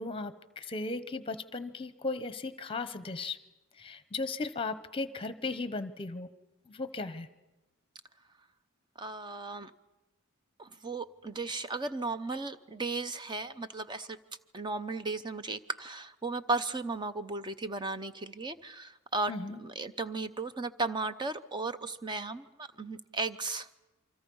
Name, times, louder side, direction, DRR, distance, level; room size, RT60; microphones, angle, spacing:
voice 1, 0.0-3.4 3.8-6.3 6.7-7.3 19.3-19.6, left 3 dB, 25° left, 12 dB, 1.0 m, -36 dB
voice 2, 9.0-9.7 10.6-14.2 14.5-19.3 19.6-22.5 22.8-23.7, right 3 dB, 20° right, 11 dB, 0.7 m, -35 dB
28.0 x 24.5 x 5.5 m, 1.1 s
head